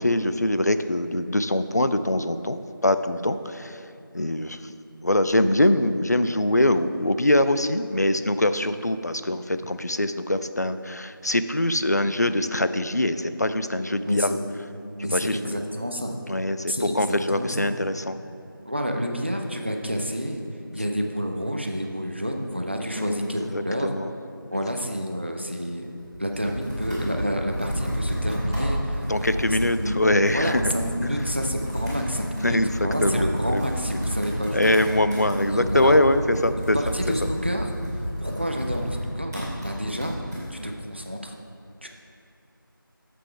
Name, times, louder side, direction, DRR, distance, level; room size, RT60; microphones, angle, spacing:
voice 1, 0.0-3.8 4.1-4.7 5.0-14.3 15.0-15.6 16.3-18.2 22.9-24.1 24.5-24.6 29.1-30.6 32.4-32.7 33.0-33.6 34.5-36.8, left 1 dB, 50° left, 11 dB, 0.4 m, -23 dB
voice 2, 14.1-14.4 15.0-16.1 16.7-17.7 18.7-20.4 20.7-23.9 24.5-25.9 26.2-29.9 30.3-34.8 35.5-36.0 36.6-37.7 38.2-40.2 40.5-41.4 41.8-41.9, equal, 30° right, 3 dB, 0.6 m, -29 dB
Computer keyboard, 25.8-40.4, equal, 10° right, 2.2 m, -31 dB
9.9 x 7.7 x 3.3 m, 2.5 s
figure-of-eight pair, 180°, 12 cm